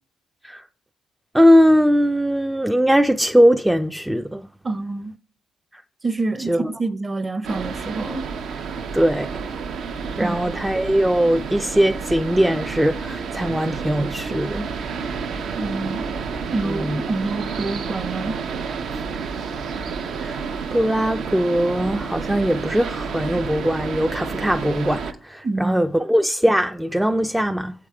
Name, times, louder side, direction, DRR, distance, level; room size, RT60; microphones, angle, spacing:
voice 1, 1.3-4.5 5.7-5.8 6.5-6.7 8.9-9.5 10.2-14.7 16.7-17.0 20.2-20.4 20.7-27.7, equal, 5° right, 0.3 m, -20 dB
voice 2, 4.6-5.1 6.0-8.2 10.2-10.4 15.6-16.1 16.5-18.4 25.4-25.8, right 3 dB, 25° right, 0.7 m, -27 dB
sound 1, 7.4-25.1, right 5 dB, 70° right, 0.6 m, -30 dB
7.5 x 4.8 x 4.7 m
cardioid pair, 90°, 0 cm